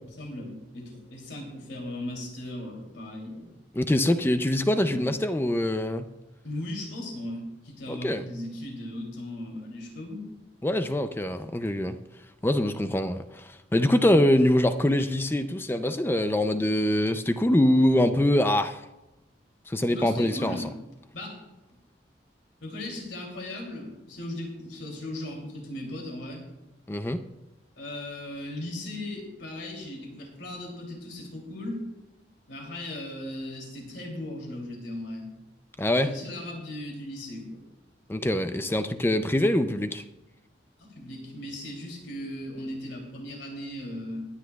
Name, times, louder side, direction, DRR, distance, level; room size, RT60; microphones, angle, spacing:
voice 1, 0.2-3.5 4.7-5.2 6.4-10.3 19.9-20.7 21.1-21.4 22.6-26.4 27.8-31.8 32.5-35.3 35.9-37.6 40.8-44.3, left 1 dB, 80° left, 0 dB, 2.9 m, -37 dB
voice 2, 3.7-6.1 7.9-8.2 10.6-12.0 12.4-18.8 19.7-20.6 26.9-27.2 35.8-36.1 38.1-40.0, left 1 dB, 10° left, 9 dB, 0.4 m, -24 dB
21.0 x 10.0 x 2.3 m, 0.98 s
head